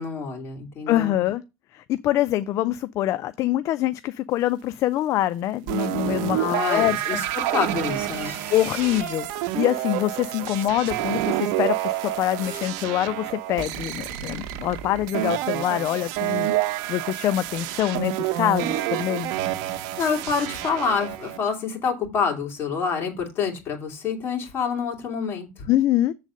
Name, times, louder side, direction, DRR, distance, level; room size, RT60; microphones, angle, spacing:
voice 1, 0.0-1.1 6.3-8.4 20.0-25.7, left 5 dB, 35° left, 2.7 m, -27 dB
voice 2, 0.9-1.4 1.7-7.2 8.5-19.3 25.7-26.1, left 13 dB, 55° left, 0.4 m, -25 dB
sound 1, 5.7-21.4, right 14 dB, 80° right, 0.7 m, -28 dB
sound 2, 7.4-9.4 10.7-11.1 11.7-12.7, right 2 dB, 30° right, 4.5 m, -41 dB
7.3 x 4.0 x 6.2 m
cardioid pair, 135°, 6 cm